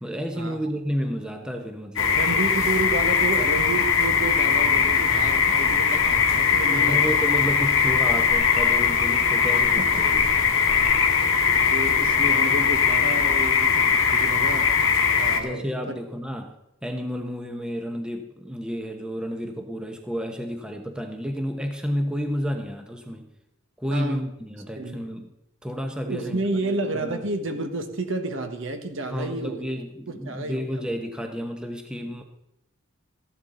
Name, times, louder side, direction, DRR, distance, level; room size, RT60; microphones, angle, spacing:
voice 1, 0.0-2.2 6.7-10.3 15.4-16.6 16.8-23.3 23.8-25.3 25.6-26.4 26.9-27.3 29.1-32.2, equal, 5° right, 0.9 m, -31 dB
sound 1, 2.0-15.4, left 6 dB, 65° left, 1.5 m, -20 dB
voice 2, 2.1-7.2 9.8-10.0 11.1-11.3 11.7-14.8 15.2-16.0 23.9-24.3 24.7-25.0 26.1-29.6 30.1-30.8, right 2 dB, 60° right, 1.4 m, -31 dB
14.0 x 11.5 x 3.9 m
head